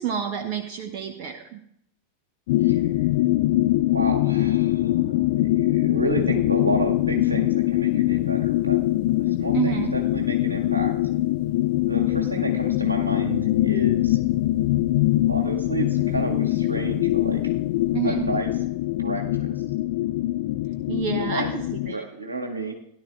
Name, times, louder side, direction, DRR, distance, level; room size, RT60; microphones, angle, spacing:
voice 1, 0.0-1.6 9.5-9.9 17.9-18.2 20.9-22.0, right 9 dB, 45° right, 5 dB, 0.9 m, -29 dB
sound 1, 2.5-21.9, left 16 dB, 50° left, 0.4 m, -23 dB
voice 2, 3.9-8.8 9.4-10.9 11.8-14.2 15.3-17.4 18.0-18.5 19.0-19.5 21.2-21.6 21.8-22.7, right 2 dB, 80° right, 1 dB, 1.6 m, -31 dB
16.5 x 11.0 x 2.3 m, 0.71 s
figure-of-eight pair, 90°, 0 cm